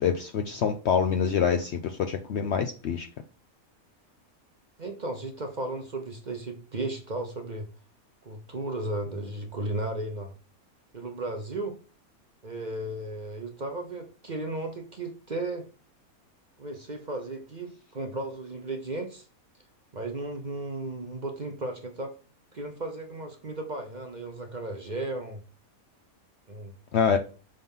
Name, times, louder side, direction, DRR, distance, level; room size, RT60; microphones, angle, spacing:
voice 1, 0.0-3.1 26.9-27.2, left 7 dB, 65° left, 6 dB, 0.7 m, -25 dB
voice 2, 4.8-7.7 8.2-10.3 10.9-11.8 12.4-15.7 16.6-19.3 19.9-22.2 22.5-25.4 26.5-26.7, right 2 dB, 40° right, 4 dB, 0.8 m, -35 dB
5.7 x 3.9 x 5.4 m, 0.37 s
omnidirectional pair, 1.5 m